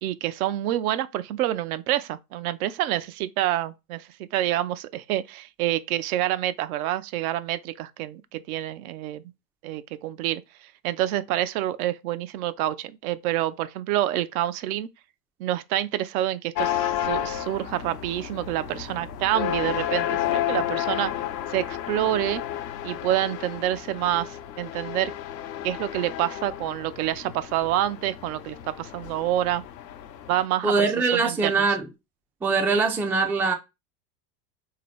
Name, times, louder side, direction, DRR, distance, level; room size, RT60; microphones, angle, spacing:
voice 1, 0.0-9.2 9.6-14.9 15.4-21.1 21.5-22.4 22.8-25.1 25.6-29.6 30.3-30.9 31.1-31.7, right 13 dB, 60° right, 0.6 m, -27 dB
sound 1, 16.5-30.4, left 11 dB, 75° left, 0.7 m, -31 dB
voice 2, 30.6-31.9 32.4-33.5, right 4 dB, 5° right, 0.4 m, -22 dB
3.6 x 2.8 x 3.2 m
hypercardioid pair, 85°, 50 cm